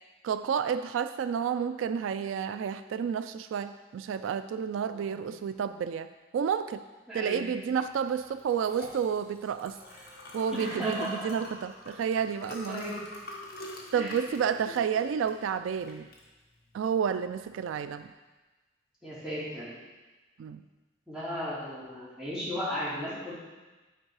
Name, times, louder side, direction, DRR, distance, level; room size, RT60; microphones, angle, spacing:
voice 1, 0.2-6.1 6.3-6.8 7.1-9.8 10.3-12.8 13.9-16.1 16.7-18.1 20.4-20.6, right 7 dB, 85° right, 11 dB, 0.3 m, -30 dB
voice 2, 4.9-5.3 7.1-7.5 10.5-11.3 12.7-12.9 14.0-14.1 19.0-19.7 21.1-23.3, equal, 5° right, -10 dB, 2.6 m, -35 dB
Liquid, 7.9-18.1, left 1 dB, 50° left, 1.4 m, -46 dB
8.9 x 4.5 x 4.7 m, 1.2 s
head